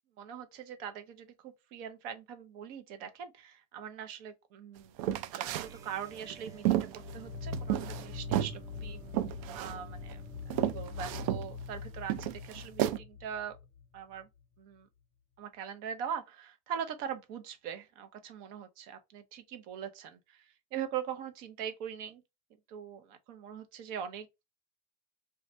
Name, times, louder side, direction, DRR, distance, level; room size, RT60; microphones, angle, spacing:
voice 1, 0.2-9.0 9.5-13.6 13.9-14.3 14.6-14.9 15.4-22.2 22.7-24.3, right 8 dB, 60° right, 0.7 m, -42 dB
sound 1, 5.0-5.7 6.2-8.1 8.3-8.6 9.1-9.8 10.1-10.2 10.5-11.5 12.1-13.0, right 13 dB, 85° right, 0.4 m, -31 dB
sound 2, 5.4-11.6, right 5 dB, 20° right, 0.4 m, -54 dB
sound 3, 6.9-14.2, left 6 dB, 15° left, 1.3 m, -43 dB
2.6 x 2.4 x 3.1 m
cardioid pair, 155°, 17 cm